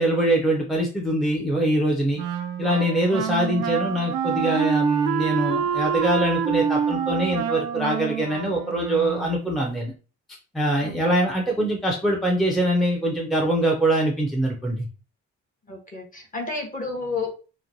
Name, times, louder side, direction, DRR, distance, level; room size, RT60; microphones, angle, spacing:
voice 1, 0.0-2.2 2.6-9.9 10.5-14.9, right 1 dB, ahead, -1 dB, 0.6 m, -23 dB
Wind instrument woodwind instrument, 2.2-9.5, right 7 dB, 80° right, 0.4 m, -26 dB
voice 2, 15.7-17.4, left 3 dB, 25° left, 2 dB, 0.9 m, -31 dB
3.0 x 2.2 x 2.5 m, 0.35 s
cardioid pair, 90°, 30 cm